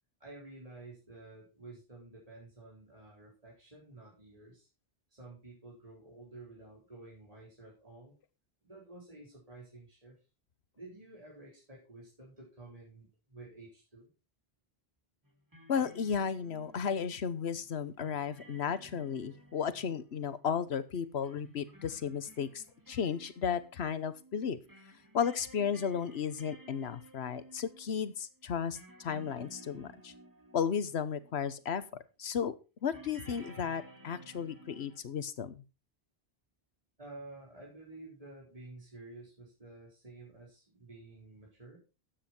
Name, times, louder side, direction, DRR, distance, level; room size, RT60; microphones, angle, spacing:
voice 1, 0.2-4.7 5.1-8.1 8.6-10.2 10.7-14.1 37.0-41.8, right 2 dB, 35° right, -4 dB, 4.4 m, -51 dB
sound 1, 15.2-31.6 32.9-35.0, right 1 dB, 20° right, 2.1 m, -56 dB
voice 2, 15.7-24.6 25.1-30.1 30.5-31.8 32.2-32.6 32.8-35.6, left 7 dB, 85° left, 14 dB, 1.3 m, -34 dB
12.5 x 8.9 x 4.4 m, 0.30 s
omnidirectional pair, 1.0 m